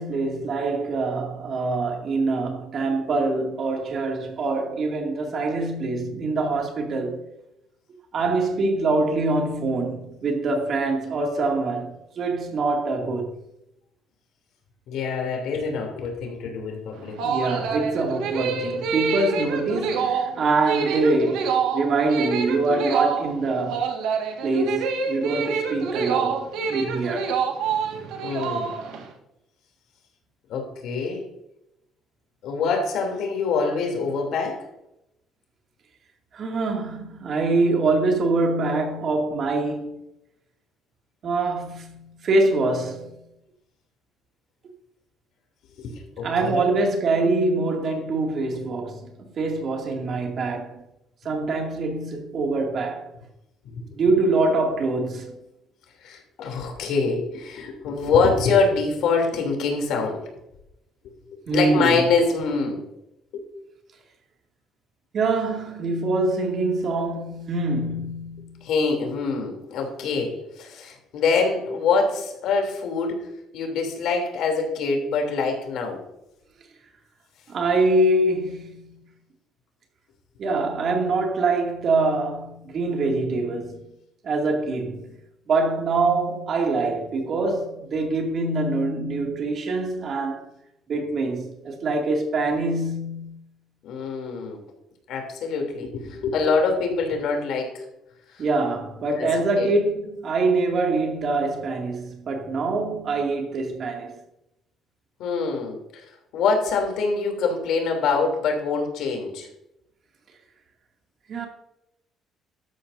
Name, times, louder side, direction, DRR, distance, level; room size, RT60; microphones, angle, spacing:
voice 1, 0.0-7.2 8.1-13.4 17.2-23.9 24.4-27.4 36.3-40.0 41.2-43.1 46.2-50.8 51.2-53.1 53.9-55.4 61.5-62.1 65.1-68.7 77.5-79.0 80.4-83.8 84.2-85.2 85.5-90.4 90.9-93.4 98.4-104.2 111.3-111.5, right 3 dB, 50° right, 2.3 m, -24 dB
voice 2, 14.9-17.2 28.2-28.7 30.5-31.2 32.4-34.7 45.8-46.6 53.6-53.8 56.0-60.2 61.5-62.8 63.3-63.4 68.6-73.3 73.5-76.0 93.8-94.6 95.1-97.8 99.2-99.3 99.5-99.7 105.2-105.8 106.3-109.5, left 4 dB, 75° left, 3.0 m, -25 dB
sound 1, 16.9-29.1, right 6 dB, 90° right, 1.7 m, -26 dB
13.0 x 11.0 x 2.7 m
cardioid pair, 110°, 0 cm